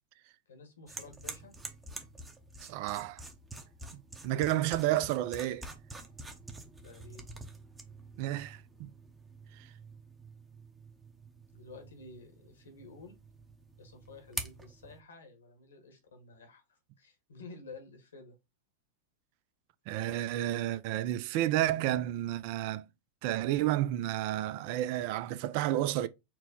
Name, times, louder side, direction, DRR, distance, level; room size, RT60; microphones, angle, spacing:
voice 1, 0.5-1.5 6.8-7.3 11.5-13.2 13.8-18.4, left 3 dB, 85° left, 1.3 m, -51 dB
sound 1, 0.9-15.0, right 2 dB, 15° right, 0.8 m, -47 dB
voice 2, 2.6-3.2 3.9-5.7 8.2-8.9 9.6-9.7 19.9-22.9 23.2-26.1, right 13 dB, 55° right, 0.4 m, -31 dB
4.5 x 2.1 x 4.0 m
hypercardioid pair, 105°, 0 cm